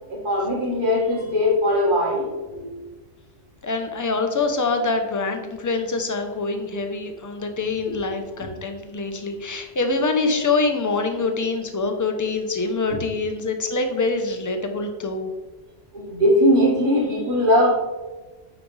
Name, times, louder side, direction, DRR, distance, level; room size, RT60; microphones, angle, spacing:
voice 1, 0.1-2.7 7.9-8.0 15.9-17.7, left 1 dB, 40° right, -4 dB, 2.1 m, -20 dB
voice 2, 3.6-15.3, left 3 dB, 20° left, 5 dB, 0.5 m, -25 dB
8.9 x 5.0 x 3.2 m, 1.3 s
omnidirectional pair, 1.3 m